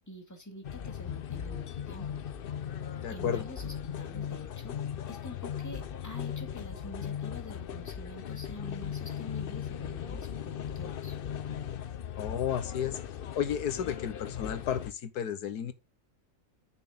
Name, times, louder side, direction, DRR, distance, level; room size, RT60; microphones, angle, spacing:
voice 1, 0.1-2.2 3.1-4.8 5.1-11.2, left 1 dB, 10° left, 2.0 m, -46 dB
sound 1, 0.6-14.9, left 9 dB, 65° left, 0.5 m, -38 dB
voice 2, 3.0-3.4 12.2-13.0 13.4-15.7, left 9 dB, 90° left, 1.5 m, -32 dB
9.3 x 6.4 x 3.8 m
omnidirectional pair, 1.6 m